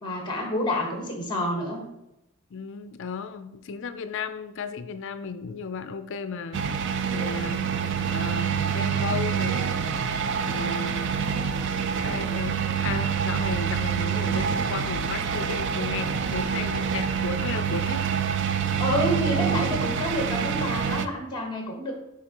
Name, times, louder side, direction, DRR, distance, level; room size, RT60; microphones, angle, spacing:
voice 1, 0.0-1.8 18.8-21.9, left 1 dB, 20° left, 1 dB, 1.3 m, -28 dB
voice 2, 2.5-6.7 7.1-7.7 8.1-9.8 10.4-11.2 12.0-12.6 12.8-18.1, left 5 dB, 55° left, 10 dB, 0.4 m, -34 dB
sound 1, 6.5-21.1, right 7 dB, 55° right, 0.4 m, -26 dB
9.6 x 3.5 x 2.9 m, 0.85 s
head